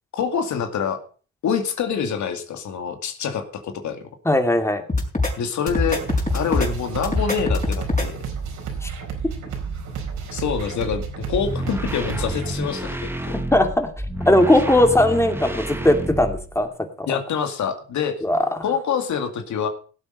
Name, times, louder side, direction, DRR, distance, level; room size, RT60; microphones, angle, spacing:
voice 1, 0.1-1.0 1.4-4.1 5.4-6.0 6.3-8.2 10.3-13.3 17.1-18.2 18.6-19.7, left 7 dB, 70° left, 7 dB, 2.2 m, -26 dB
voice 2, 4.2-4.8 8.8-8.9 13.3-13.9 14.3-16.7 17.0-17.1 18.2-18.4, left 1 dB, 10° left, 6 dB, 2.5 m, -18 dB
sound 1, 4.9-5.3 5.7-6.7 7.0-8.1, left 3 dB, 25° left, 5.6 m, -22 dB
sound 2, 5.7-12.5, right 6 dB, 80° right, 4.3 m, -31 dB
sound 3, 11.2-16.7, right 1 dB, 10° right, 1.6 m, -30 dB
17.5 x 8.0 x 5.3 m, 0.39 s
cardioid pair, 90°, 30 cm